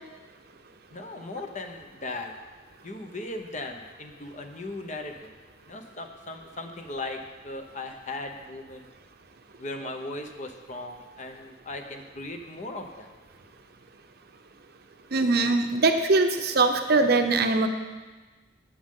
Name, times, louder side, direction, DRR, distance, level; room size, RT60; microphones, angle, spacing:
voice 1, 0.9-2.3 2.8-5.3 5.7-8.9 9.6-13.1, left 2 dB, 40° left, 4 dB, 0.9 m, -38 dB
voice 2, 15.1-17.7, right 3 dB, 55° right, 6 dB, 0.8 m, -22 dB
17.5 x 6.4 x 3.8 m, 1.3 s
head